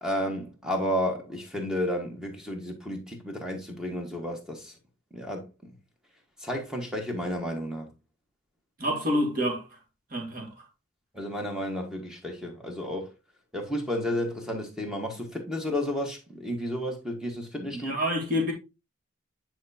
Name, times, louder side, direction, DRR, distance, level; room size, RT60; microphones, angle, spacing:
voice 1, 0.0-4.7 5.1-5.7 6.4-7.9 11.1-13.1 13.5-17.9, equal, 5° right, 1.4 m, -32 dB
voice 2, 8.8-9.6 10.1-10.5 17.7-18.5, equal, 40° right, 2.2 m, -27 dB
9.2 x 4.5 x 2.8 m
head